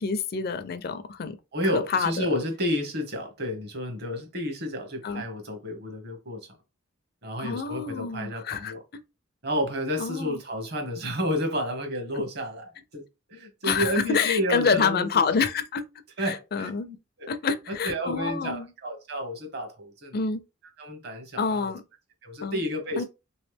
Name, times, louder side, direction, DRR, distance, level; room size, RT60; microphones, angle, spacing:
voice 1, 0.0-1.4 1.7-2.3 5.0-5.2 7.4-9.0 10.0-10.4 13.6-15.8 16.2-16.9 17.3-18.7 20.1-20.4 21.4-21.8 22.4-22.6 23.0-23.1, left 5 dB, 50° left, 0.4 m, -27 dB
voice 2, 1.5-6.5 7.2-8.8 9.4-13.0 13.3-15.2 16.2-17.3 17.7-20.2 20.8-21.7 22.2-23.0, equal, 55° right, 1.1 m, -31 dB
3.3 x 3.1 x 3.3 m
head